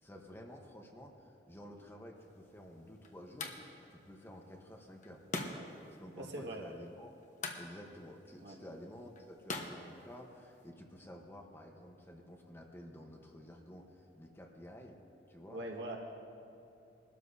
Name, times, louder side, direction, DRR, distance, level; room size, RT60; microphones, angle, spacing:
voice 1, 0.0-5.2 5.9-7.1 7.6-15.0 15.3-15.6, equal, 15° left, 1 dB, 1.1 m, -52 dB
sound 1, 2.2-10.7, left 3 dB, 45° left, 1.1 m, -46 dB
voice 2, 6.2-6.6 8.4-8.6 15.5-16.0, right 1 dB, 80° right, -2 dB, 2.0 m, -42 dB
21.5 x 12.5 x 2.8 m, 2.8 s
head